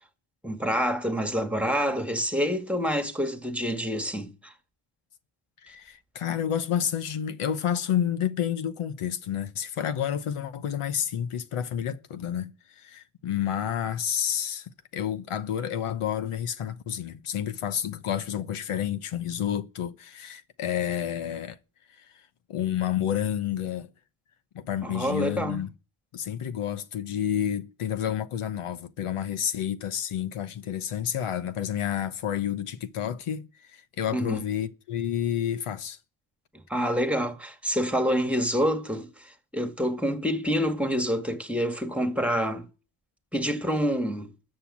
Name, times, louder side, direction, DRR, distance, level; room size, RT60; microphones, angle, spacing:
voice 1, 0.4-4.5 24.8-25.6 34.1-34.4 36.7-42.7 43.3-44.3, equal, ahead, 1.9 m, -27 dB
voice 2, 5.6-21.6 22.0-22.1 22.5-23.9 24.5-25.7 26.1-36.0, left 9 dB, 85° left, 1.0 m, -30 dB
13.5 x 6.7 x 8.6 m
cardioid pair, 80°, 50 cm